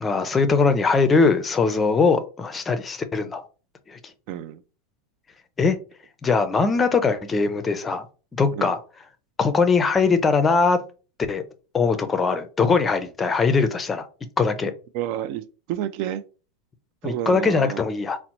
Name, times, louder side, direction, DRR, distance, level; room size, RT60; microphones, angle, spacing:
voice 1, 0.0-3.4 3.9-4.0 5.6-5.8 6.2-8.1 8.3-8.8 9.4-10.8 11.3-11.4 11.7-14.1 14.4-14.7 17.0-18.2, left 4 dB, 20° left, 0.4 m, -21 dB
voice 2, 4.3-4.6 8.5-8.7 14.9-16.2 17.0-17.8, right 11 dB, 55° right, 0.3 m, -30 dB
4.0 x 2.0 x 2.9 m
supercardioid pair, 125°, 0 cm